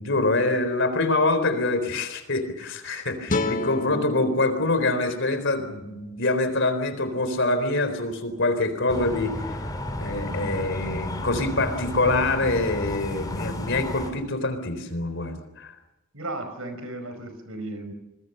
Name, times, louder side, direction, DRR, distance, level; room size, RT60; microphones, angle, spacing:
voice 1, 0.0-9.6 10.0-15.7, left 2 dB, 60° left, 9 dB, 4.0 m, -25 dB
sound 1, 3.3-6.5, left 2 dB, 40° left, 1.8 m, -32 dB
sound 2, 8.9-14.1, left 1 dB, 20° left, 4.1 m, -32 dB
voice 2, 16.1-17.9, right 2 dB, 80° right, 8 dB, 5.1 m, -35 dB
26.5 x 22.0 x 6.8 m, 0.97 s
head